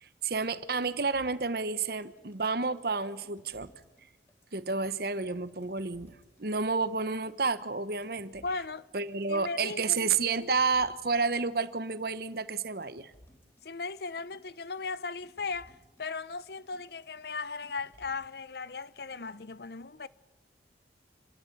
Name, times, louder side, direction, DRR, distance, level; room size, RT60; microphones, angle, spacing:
voice 1, 0.0-3.7 4.5-8.4 8.9-13.1, right 4 dB, 55° right, 1.0 m, -30 dB
sound 1, 0.8-19.3, equal, 15° left, 4.0 m, -61 dB
voice 2, 8.4-8.9 9.3-10.0 13.6-20.1, left 4 dB, 60° left, 0.7 m, -37 dB
27.0 x 13.0 x 9.2 m
head